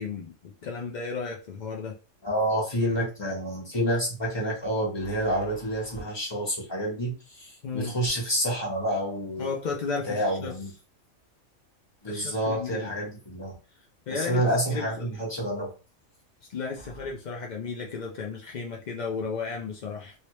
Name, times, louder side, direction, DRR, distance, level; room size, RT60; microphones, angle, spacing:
voice 1, 0.0-2.0 7.6-7.9 9.4-10.6 12.1-13.0 14.1-15.1 16.5-20.1, left 5 dB, 65° left, 0 dB, 0.4 m, -34 dB
voice 2, 2.2-9.5 10.1-10.7 12.0-13.5 14.1-15.7, right 1 dB, 20° left, -4 dB, 1.2 m, -28 dB
2.9 x 2.8 x 3.1 m, 0.34 s
omnidirectional pair, 1.4 m